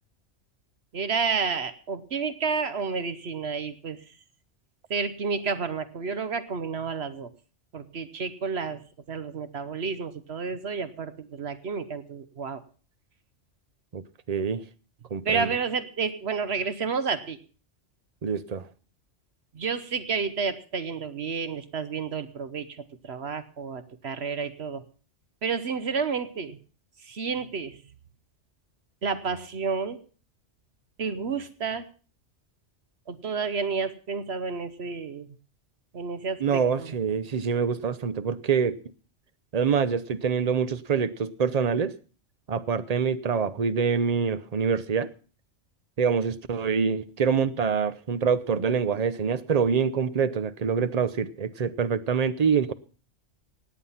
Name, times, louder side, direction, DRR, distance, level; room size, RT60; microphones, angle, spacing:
voice 1, 0.9-4.0 4.9-7.3 7.7-8.8 9.1-12.6 15.2-17.4 19.5-22.7 23.0-24.8 25.4-26.6 27.1-27.8 29.0-30.0 31.0-31.9 33.1-35.3 35.9-36.9, right 5 dB, 60° right, 1.2 m, -30 dB
voice 2, 14.3-14.6 15.1-15.6 18.2-18.6 36.4-38.8 39.5-41.9 42.5-45.1 46.0-52.7, right 6 dB, 40° right, 0.7 m, -25 dB
17.5 x 9.4 x 5.7 m
omnidirectional pair, 1.3 m